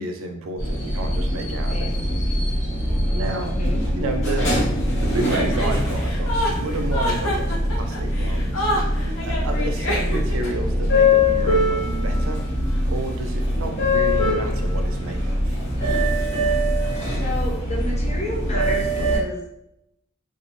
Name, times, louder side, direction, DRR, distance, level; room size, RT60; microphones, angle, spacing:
voice 1, 0.0-2.2 3.1-3.6 3.9-8.7 9.2-12.4 12.9-15.6, right 2 dB, 80° right, 4 dB, 0.4 m, -31 dB
sound 1, 0.6-19.2, left 1 dB, 70° left, 1.0 m, -22 dB
voice 2, 3.4-3.8 17.2-19.4, left 1 dB, 35° left, -1 dB, 0.5 m, -31 dB
Chuckle chortle, 5.2-10.5, left 1 dB, 85° left, 0.7 m, -27 dB
2.3 x 2.0 x 2.9 m, 0.79 s
head